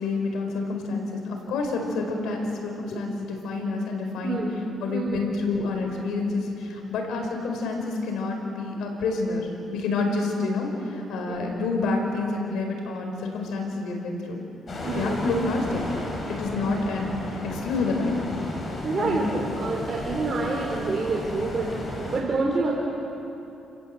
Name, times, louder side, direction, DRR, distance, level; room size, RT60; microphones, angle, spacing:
voice 1, 0.0-4.4 4.8-14.4 14.9-15.8 16.3-18.2 18.9-19.2, left 3 dB, 80° left, 2 dB, 4.8 m, -28 dB
sound 1, 14.7-22.2, left 1 dB, 40° left, 5.5 m, -34 dB
voice 2, 14.8-15.2 18.8-19.2 19.5-21.7 22.0-22.7, right 3 dB, 40° right, -3 dB, 3.9 m, -27 dB
28.5 x 17.0 x 7.9 m, 2.9 s
cardioid pair, 95°, 0 cm